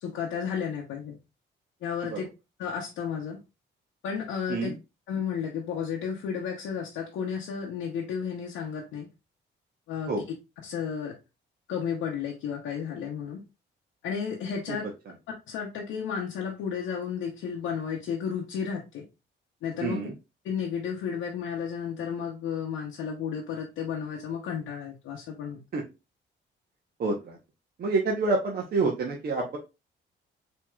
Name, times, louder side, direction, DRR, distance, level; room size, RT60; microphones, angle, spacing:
voice 1, 0.0-1.2 1.8-2.3 2.6-3.4 4.0-4.7 5.1-9.1 9.9-10.1 10.6-11.2 11.7-13.4 14.0-14.9 15.5-19.1 19.6-20.1 20.4-25.6, left 7 dB, 85° left, 0.7 m, -33 dB
voice 2, 19.8-20.1 25.7-25.8 27.0-27.4 27.8-29.6, right 3 dB, 50° right, 0.8 m, -27 dB
4.5 x 2.9 x 2.2 m
cardioid pair, 90°, 20 cm